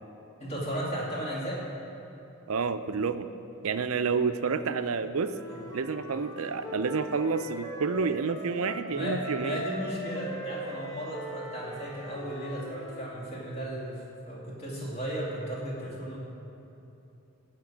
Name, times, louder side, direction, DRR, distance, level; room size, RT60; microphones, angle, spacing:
voice 1, 0.4-1.6 5.5-5.6 8.9-14.0 14.3-16.2, equal, 30° left, -5 dB, 2.6 m, -35 dB
voice 2, 2.5-3.3 3.6-5.3 5.7-9.6, right 5 dB, 80° right, 10 dB, 0.6 m, -29 dB
Wind instrument woodwind instrument, 5.2-8.9 9.2-13.2, equal, 15° left, 1.3 m, -41 dB
16.5 x 5.9 x 8.6 m, 2.9 s
head